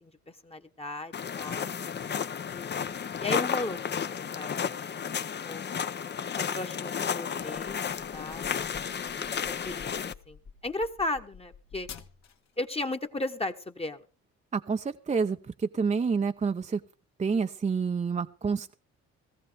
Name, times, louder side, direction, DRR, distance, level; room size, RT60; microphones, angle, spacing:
voice 1, 0.0-1.7 2.2-4.5 4.8-5.1 5.5-5.6 6.2-8.8 9.2-9.3 9.6-11.9 12.6-14.0, left 2 dB, 20° left, 6 dB, 1.2 m, -36 dB
sound 1, 1.1-10.1, left 7 dB, 35° left, 0.7 m, -33 dB
sound 2, 7.7-12.6, left 6 dB, 60° left, 1.8 m, -49 dB
voice 2, 14.5-16.8 17.2-18.7, right 5 dB, 25° right, 8 dB, 0.6 m, -28 dB
17.5 x 14.5 x 3.5 m, 0.34 s
cardioid pair, 90°, 30 cm